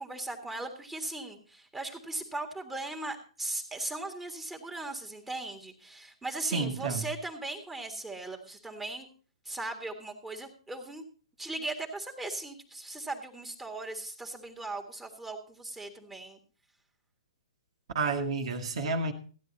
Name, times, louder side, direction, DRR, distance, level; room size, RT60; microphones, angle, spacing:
voice 1, 0.0-9.1 9.5-11.0 11.4-16.4, right 2 dB, 5° right, 2 dB, 1.7 m, -38 dB
voice 2, 6.5-7.0 17.9-19.1, right 3 dB, 60° right, 3 dB, 1.5 m, -30 dB
15.0 x 9.8 x 4.0 m, 0.39 s
hypercardioid pair, 125°, 3 cm